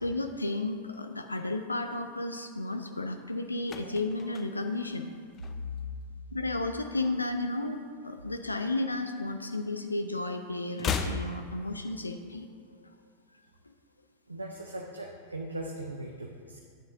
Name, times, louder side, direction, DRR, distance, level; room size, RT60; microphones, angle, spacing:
voice 1, 0.0-5.1 6.3-7.8 8.0-12.5, left 2 dB, 80° left, 6 dB, 0.4 m, -33 dB
sound 1, 3.5-6.0 6.2-6.5 6.8-8.3 8.6-9.9 10.2-12.3 12.5-12.6, left 6 dB, 30° left, 0.5 m, -38 dB
voice 2, 14.3-16.6, right 2 dB, 80° right, 0 dB, 0.6 m, -39 dB
11.5 x 9.0 x 2.6 m, 2.1 s
figure-of-eight pair, 90°, 0 cm